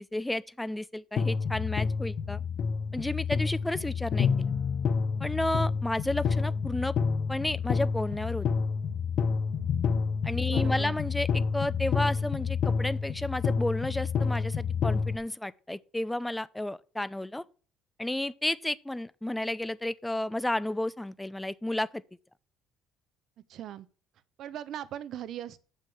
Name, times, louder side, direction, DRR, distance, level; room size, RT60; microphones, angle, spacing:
voice 1, 0.0-2.4 2.9-4.5 5.2-7.0 7.3-8.5 10.2-17.4 18.0-22.0, left 1 dB, 5° left, 0.5 m, -32 dB
sound 1, 1.2-15.2, left 5 dB, 55° left, 0.9 m, -29 dB
voice 2, 10.4-11.0 23.5-23.9 24.4-25.6, right 11 dB, 60° right, 0.9 m, -39 dB
7.4 x 6.4 x 7.9 m
cardioid pair, 115°, 0 cm